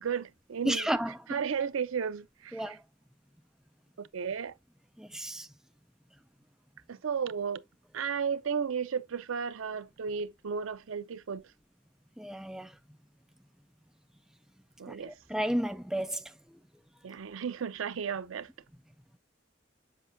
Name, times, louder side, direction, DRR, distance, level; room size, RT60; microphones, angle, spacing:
voice 1, 0.0-0.9 1.3-2.8 4.0-4.5 6.9-7.6 7.9-11.4 14.8-15.1 17.0-18.5, right 6 dB, 85° right, 0.5 m, -34 dB
voice 2, 0.6-1.2 2.5-2.8 5.0-5.5 12.2-12.7 14.9-16.2, right 1 dB, ahead, 0.3 m, -32 dB
7.5 x 5.1 x 2.6 m
head